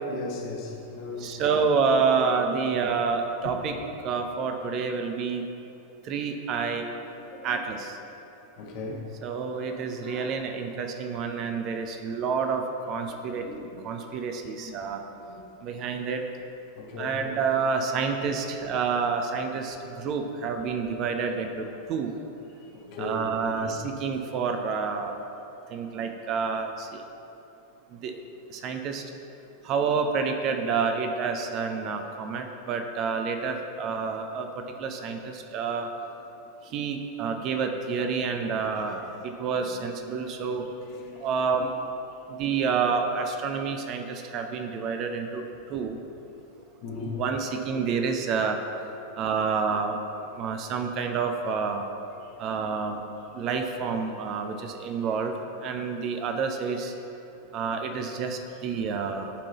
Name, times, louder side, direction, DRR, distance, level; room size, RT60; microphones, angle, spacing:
voice 1, 0.0-1.5 2.6-2.7 3.4-3.5 6.8-7.6 8.6-9.1 9.6-10.4 12.9-13.8 14.5-15.8 16.8-17.2 21.2-21.9 22.6-23.8 34.7-34.8 38.5-39.2 39.5-39.8 40.6-41.8 42.3-42.6 46.8-47.2 49.0-49.1 52.2-52.5 56.7-56.8 57.4-57.5, left 2 dB, 45° left, -1 dB, 1.2 m, -40 dB
voice 2, 1.2-3.7 4.0-5.5 6.0-6.8 7.4-8.0 9.2-12.6 12.9-13.5 13.8-15.0 15.6-16.2 17.0-22.1 23.0-25.1 25.7-27.0 27.9-28.2 28.5-29.0 29.6-35.9 36.7-40.6 41.2-41.7 42.3-46.0 47.2-48.6 49.2-50.0 50.3-51.8 52.4-53.0 53.3-56.9 57.5-59.3, right 5 dB, 35° right, 5 dB, 0.6 m, -28 dB
11.5 x 3.8 x 4.2 m, 2.9 s
figure-of-eight pair, 90°, 0 cm